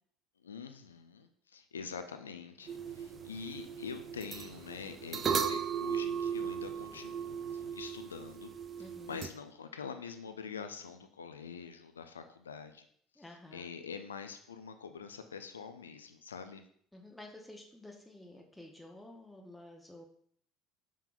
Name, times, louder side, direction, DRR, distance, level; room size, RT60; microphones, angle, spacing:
voice 1, 0.4-8.5 8.8-12.9 13.5-16.6, left 6 dB, 85° left, 8 dB, 0.4 m, -45 dB
sound 1, 2.6-7.7, right 3 dB, 75° right, 1.2 m, -58 dB
sound 2, 2.7-9.3, right 7 dB, 40° right, 0.4 m, -37 dB
voice 2, 8.8-9.2 13.2-13.6 16.9-20.0, left 1 dB, 5° left, 0 dB, 0.8 m, -51 dB
5.5 x 3.7 x 2.5 m, 0.62 s
hypercardioid pair, 65°, 0 cm